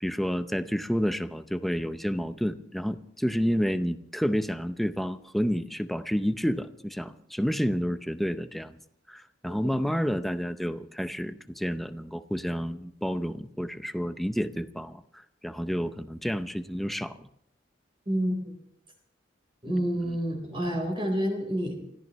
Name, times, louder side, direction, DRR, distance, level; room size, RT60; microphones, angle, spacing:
voice 1, 0.0-8.8 9.1-17.3 20.0-20.2, equal, ahead, 10 dB, 0.6 m, -30 dB
voice 2, 18.1-18.4 19.6-21.8, equal, 30° right, 2 dB, 4.0 m, -28 dB
28.5 x 14.0 x 3.1 m, 0.73 s
head